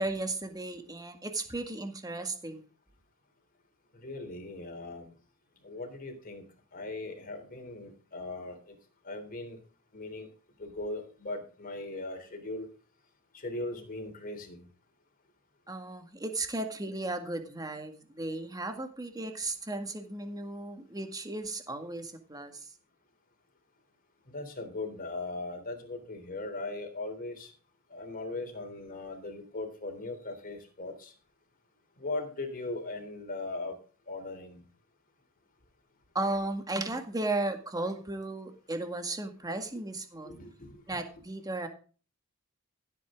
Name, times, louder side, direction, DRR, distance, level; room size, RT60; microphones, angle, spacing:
voice 1, 0.0-2.6 15.7-22.5 36.1-40.3 40.9-41.7, right 2 dB, 15° right, 6 dB, 2.0 m, -35 dB
voice 2, 3.9-5.1 5.6-6.4 6.7-8.8 9.0-9.6 9.9-10.3 10.6-12.7 13.3-14.7 24.3-27.5 27.9-31.1 32.0-33.8 34.1-34.6 40.2-41.0, left 2 dB, 40° left, 4 dB, 3.4 m, -39 dB
15.5 x 8.5 x 3.8 m, 0.38 s
head